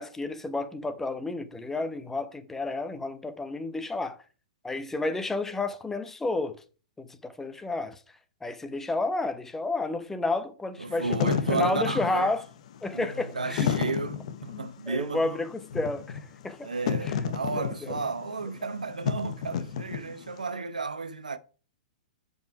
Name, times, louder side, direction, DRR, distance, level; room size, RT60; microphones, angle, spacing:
voice 1, 0.0-4.2 4.6-6.6 7.0-8.0 8.4-12.4 12.8-13.7 14.9-16.7 17.0-17.2 17.6-17.9, left 2 dB, 10° left, 1.0 m, -31 dB
voice 2, 10.8-12.3 12.9-15.4 16.6-21.4, right 4 dB, 85° right, 0.8 m, -33 dB
Wind / Fire, 10.9-20.4, left 7 dB, 60° left, 1.1 m, -32 dB
7.2 x 5.3 x 4.7 m
hypercardioid pair, 115°, 4 cm